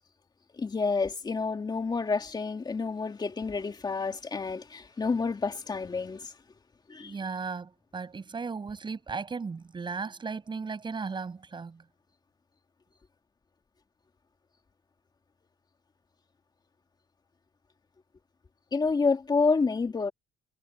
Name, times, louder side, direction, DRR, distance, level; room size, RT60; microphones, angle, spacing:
voice 1, 0.5-6.3 6.9-7.1 18.7-20.1, left 4 dB, 25° left, 2.5 m, -29 dB
voice 2, 7.0-11.8, right 5 dB, 30° right, 7.5 m, -36 dB
cardioid pair, 110°, 17 cm